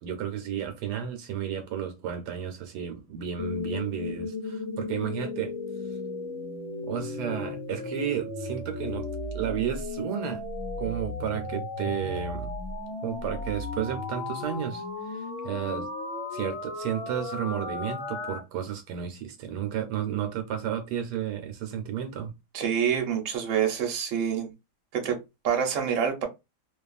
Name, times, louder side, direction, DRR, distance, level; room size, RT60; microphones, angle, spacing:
voice 1, 0.0-5.6 6.8-9.1 9.3-10.4 10.8-12.5 13.0-15.9 16.3-22.3, right 9 dB, 80° right, 1.2 m, -32 dB
sound 1, 3.4-18.4, left 2 dB, 60° left, 0.9 m, -35 dB
voice 2, 22.5-24.5 24.9-26.3, right 8 dB, 55° right, 1.1 m, -27 dB
2.8 x 2.3 x 2.3 m
omnidirectional pair, 1.8 m